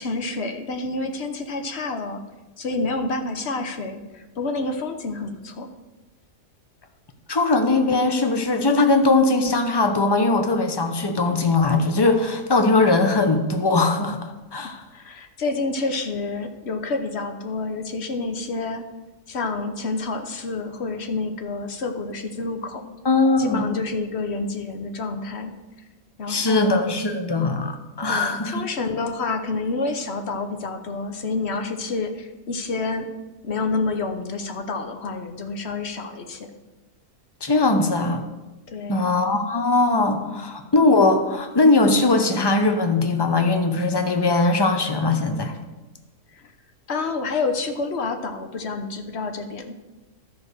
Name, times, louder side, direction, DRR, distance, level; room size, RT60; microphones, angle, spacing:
voice 1, 0.0-2.2 2.6-5.7 14.6-18.8 19.3-22.8 23.4-25.6 26.2-26.9 28.1-33.1 33.4-36.5 38.7-39.1 39.9-40.4 46.3-46.4 46.9-49.7, left 3 dB, 50° left, 7 dB, 1.1 m, -28 dB
voice 2, 7.3-14.8 23.0-23.8 26.3-28.6 37.4-38.2 38.9-45.6, left 3 dB, 20° left, 6 dB, 0.7 m, -20 dB
12.5 x 5.2 x 6.7 m, 1.1 s
omnidirectional pair, 1.6 m